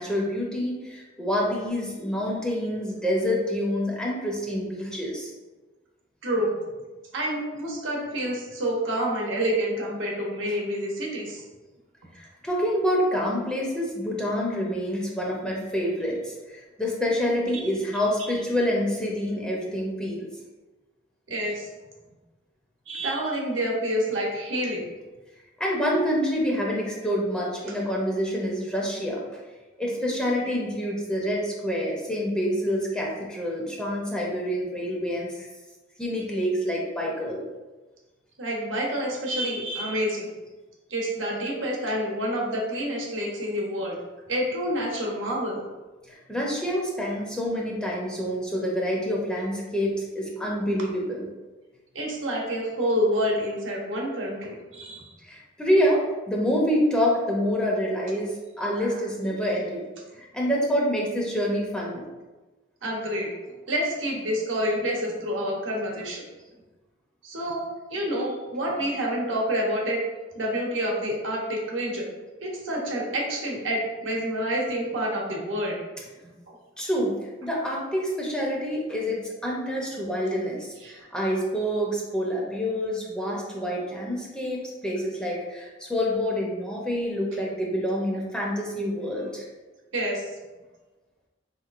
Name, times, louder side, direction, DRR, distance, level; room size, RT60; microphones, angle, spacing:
voice 1, 0.0-5.3 12.1-20.3 25.6-29.2 29.8-35.5 36.0-37.4 46.1-51.3 55.2-59.8 60.2-62.0 76.8-89.5, equal, 5° left, -3 dB, 0.5 m, -27 dB
voice 2, 6.2-6.5 7.1-11.4 21.3-21.7 22.9-24.9 38.4-40.3 40.9-44.0 44.3-45.6 51.9-55.1 58.7-58.9 62.8-63.3 63.7-66.2 67.2-67.6 67.9-70.0 70.3-72.1 72.4-75.8 76.2-76.5 80.8-81.0 89.9-90.3, equal, 80° right, -2 dB, 0.9 m, -28 dB
3.9 x 2.9 x 2.4 m, 1.2 s
head